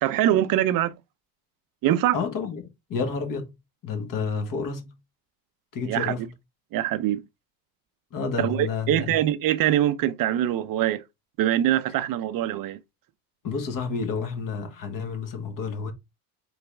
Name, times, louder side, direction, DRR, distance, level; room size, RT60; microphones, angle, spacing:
voice 1, 0.0-1.0 1.8-2.2 5.9-6.1 6.7-7.2 8.4-11.0 11.4-12.8, right 12 dB, 60° right, 0.6 m, -23 dB
voice 2, 2.1-3.5 3.8-4.9 5.7-6.3 8.1-9.2 13.4-15.9, left 5 dB, 55° left, 1.5 m, -30 dB
4.0 x 4.0 x 3.3 m
supercardioid pair, 90°, 39 cm